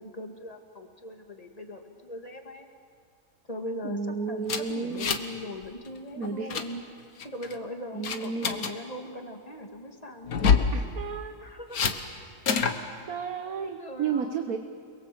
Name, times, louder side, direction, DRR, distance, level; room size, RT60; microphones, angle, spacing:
voice 1, 0.0-2.7 3.5-4.0 4.3-6.8 7.2-10.6 11.4-11.8 13.6-14.6, left 1 dB, 25° left, 3 dB, 2.3 m, -40 dB
voice 2, 3.8-5.1 6.2-6.5 7.9-8.7 10.7-11.5 13.1-14.6, right 6 dB, 80° right, 7 dB, 1.6 m, -32 dB
sound 1, 4.5-5.4 5.6-5.9 6.2-6.7 7.2-7.6 8.0-8.7 10.3-10.7 11.7-12.0 12.5-12.8, left 6 dB, 85° left, 1.8 m, -25 dB
29.0 x 22.5 x 7.8 m, 2.2 s
omnidirectional pair, 1.5 m